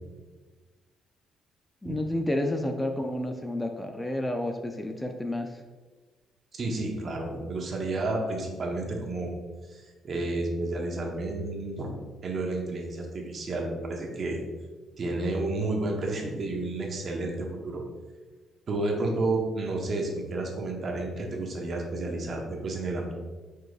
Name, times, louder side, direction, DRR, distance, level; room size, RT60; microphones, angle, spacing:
voice 1, 1.8-5.6, left 1 dB, 15° left, 4 dB, 0.4 m, -30 dB
voice 2, 6.5-9.3 9.7-12.0 12.2-14.4 15.0-17.8 18.7-23.1, right 2 dB, 45° right, 0 dB, 1.0 m, -31 dB
4.6 x 4.6 x 2.4 m, 1.3 s
cardioid pair, 90°, 0 cm